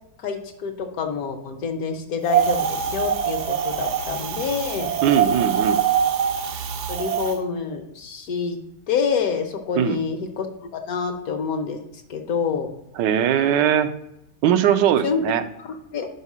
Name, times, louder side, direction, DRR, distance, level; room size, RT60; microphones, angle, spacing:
voice 1, 0.2-4.9 6.9-8.6 8.9-10.5 10.7-11.8 12.1-12.7 15.0-15.2 15.6-16.1, left 6 dB, 65° left, 6 dB, 1.1 m, -27 dB
Wind, 2.3-7.4, right 8 dB, 70° right, 0.6 m, -23 dB
voice 2, 5.0-5.8 9.8-10.0 13.0-13.9 14.4-15.4, right 9 dB, 85° right, 10 dB, 1.3 m, -20 dB
5.5 x 4.9 x 5.9 m, 0.85 s
omnidirectional pair, 1.9 m